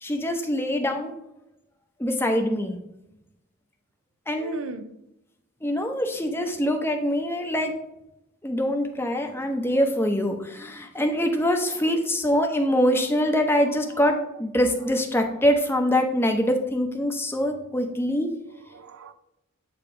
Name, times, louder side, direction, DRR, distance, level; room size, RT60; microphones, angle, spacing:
voice 1, 0.0-1.1 2.0-2.8 4.3-4.6 5.6-7.7 8.4-18.3, equal, 10° left, 0.7 m, -24 dB
voice 2, 4.4-4.9 11.7-12.0 12.6-13.6 14.0-14.2 18.5-19.1, right 4 dB, 75° right, 0.5 m, -41 dB
8.7 x 2.9 x 4.8 m
head